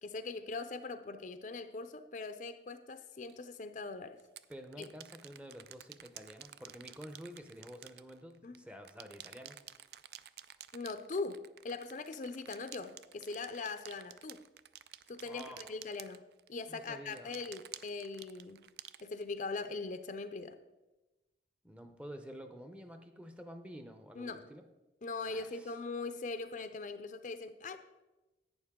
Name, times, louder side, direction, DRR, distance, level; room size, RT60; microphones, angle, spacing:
voice 1, 0.0-4.2 4.8-4.9 8.4-8.5 10.7-14.4 15.1-18.7 19.0-20.6 24.1-24.5 25.0-28.0, left 3 dB, 45° left, 0.5 m, -41 dB
sound 1, 3.2-3.3 4.2-8.6 8.8-16.7 17.1-19.6, right 12 dB, 60° right, 0.3 m, -52 dB
voice 2, 4.5-9.6 15.3-15.8 16.7-17.3 21.6-24.6 25.2-25.8, equal, 5° right, 0.6 m, -49 dB
11.5 x 8.7 x 3.6 m
head